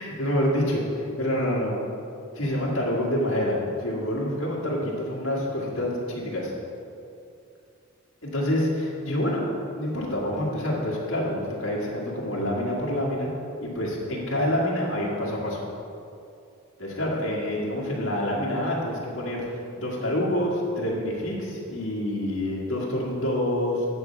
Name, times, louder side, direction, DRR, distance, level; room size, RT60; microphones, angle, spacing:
voice 1, 0.0-1.8 2.3-6.5 8.2-9.5 9.7-13.3 13.6-15.6 16.8-19.4 19.8-23.9, left 1 dB, 60° left, -4 dB, 1.9 m, -27 dB
9.6 x 4.6 x 7.0 m, 2.5 s
head